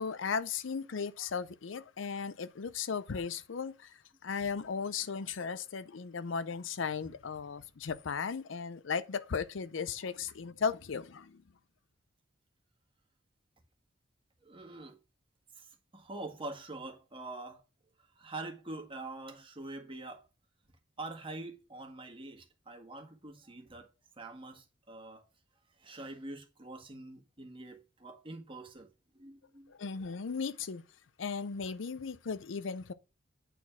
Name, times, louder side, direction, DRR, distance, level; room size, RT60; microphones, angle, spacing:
voice 1, 0.0-11.4 29.7-30.8 31.2-32.9, left 5 dB, 75° left, 0.6 m, -36 dB
voice 2, 14.4-15.0 15.5-17.6 18.0-20.3 21.0-23.9 24.2-25.2 25.8-28.9 29.1-29.7, right 2 dB, 25° right, 1.7 m, -45 dB
9.2 x 4.2 x 5.9 m
head